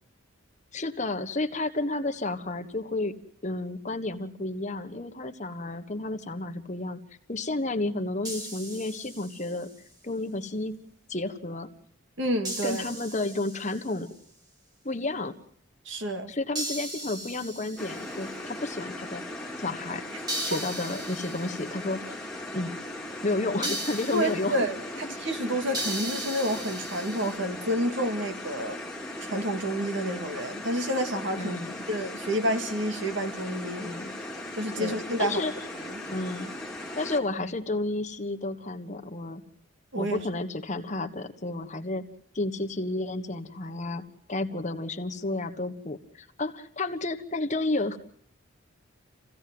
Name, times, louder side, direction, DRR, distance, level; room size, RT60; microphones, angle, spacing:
voice 1, 0.7-3.1 3.4-7.0 7.3-9.7 10.0-10.7 11.1-11.7 12.6-14.1 14.8-15.3 16.3-19.2 19.6-20.0 20.4-22.0 22.5-22.7 23.2-24.7 25.0-25.2 31.4-31.7 33.8-34.1 34.8-35.5 36.1-36.5 36.9-39.4 40.0-42.0 42.3-44.0 44.3-48.0, left 2 dB, 35° left, 8 dB, 1.3 m, -31 dB
sound 1, 8.2-9.7 12.4-14.0 16.5-18.4 20.3-21.7 23.6-24.6 25.7-27.4, right 1 dB, 20° right, 2.6 m, -37 dB
voice 2, 12.2-12.8 15.9-16.3 20.5-20.6 24.1-28.8 29.2-31.6 31.9-33.9 34.6-35.4 35.9-36.1 39.9-40.2, equal, 60° right, 7 dB, 2.3 m, -29 dB
sound 2, 17.8-37.2, left 1 dB, 5° left, 2.2 m, -38 dB
27.5 x 16.5 x 7.8 m, 0.67 s
head